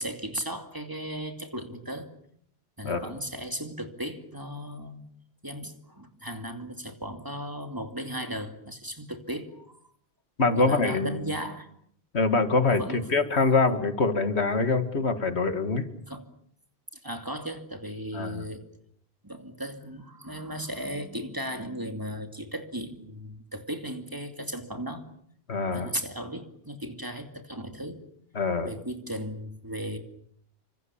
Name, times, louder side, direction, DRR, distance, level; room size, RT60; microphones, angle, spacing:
voice 1, 0.0-2.1 2.8-5.0 5.4-9.8 10.5-11.7 12.6-13.3 16.1-16.3 16.9-18.6 19.2-25.1 25.7-28.0 28.6-30.0, equal, 20° right, 6 dB, 2.6 m, -36 dB
voice 2, 10.4-11.3 12.1-15.9 18.1-18.4 25.5-25.9 28.4-28.7, left 3 dB, 90° left, 9 dB, 2.3 m, -24 dB
28.5 x 25.0 x 7.2 m, 0.66 s
omnidirectional pair, 1.1 m